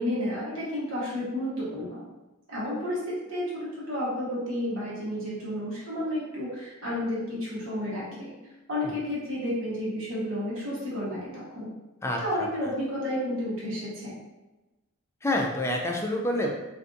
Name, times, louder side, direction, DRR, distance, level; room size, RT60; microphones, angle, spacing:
voice 1, 0.0-2.0 2.5-8.3 8.7-11.7 12.2-14.2, left 1 dB, 85° right, -7 dB, 1.1 m, -31 dB
voice 2, 12.0-12.5 15.2-16.5, left 1 dB, 15° left, 1 dB, 0.4 m, -28 dB
2.5 x 2.4 x 3.7 m, 1.1 s
head